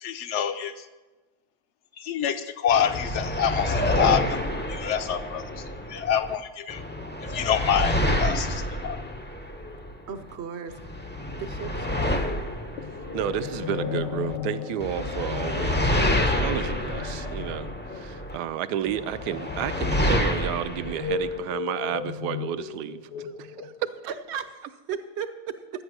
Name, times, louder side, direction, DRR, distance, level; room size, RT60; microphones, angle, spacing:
voice 1, 0.0-0.9 2.0-6.8 7.3-9.0, left 8 dB, 60° left, 10 dB, 0.8 m, -27 dB
sound 1, 2.7-6.3 6.7-10.3 10.7-14.4 14.8-18.4 18.9-21.4, left 1 dB, 15° left, 0.3 m, -28 dB
voice 2, 10.1-10.7 11.4-12.2 24.1-24.4 24.9-25.3, right 7 dB, 55° right, 9 dB, 0.8 m, -35 dB
sound 2, 12.8-24.1, left 7 dB, 85° left, 1.4 m, -35 dB
voice 3, 13.1-23.9, right 11 dB, 75° right, 13 dB, 1.1 m, -32 dB
12.0 x 8.7 x 6.2 m, 1.2 s
omnidirectional pair, 1.8 m